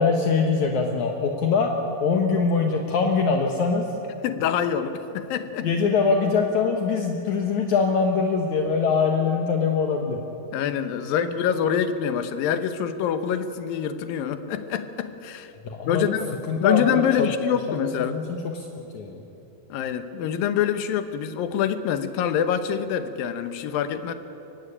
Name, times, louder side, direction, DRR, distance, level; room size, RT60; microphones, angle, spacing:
voice 1, 0.0-1.7 2.0-3.9 5.6-10.2 15.6-16.1 16.5-17.3 17.7-18.7 18.9-19.2, left 5 dB, 65° left, 3 dB, 2.4 m, -23 dB
voice 2, 4.2-5.7 10.5-15.5 15.9-18.2 19.7-24.1, left 8 dB, 80° left, 10 dB, 2.7 m, -25 dB
23.5 x 16.0 x 10.0 m, 3.0 s
omnidirectional pair, 4.1 m